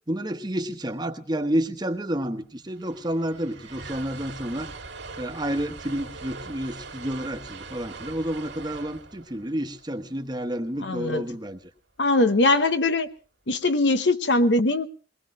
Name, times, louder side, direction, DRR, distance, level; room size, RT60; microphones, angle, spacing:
voice 1, 0.1-4.7 5.2-11.6, right 1 dB, 25° right, 7 dB, 1.2 m, -30 dB
sound 1, 2.5-10.8, right 4 dB, 85° right, 2.3 m, -42 dB
voice 2, 10.8-11.2 12.0-13.1 13.5-14.9, left 2 dB, 75° left, 11 dB, 1.0 m, -21 dB
23.0 x 19.5 x 3.1 m, 0.37 s
head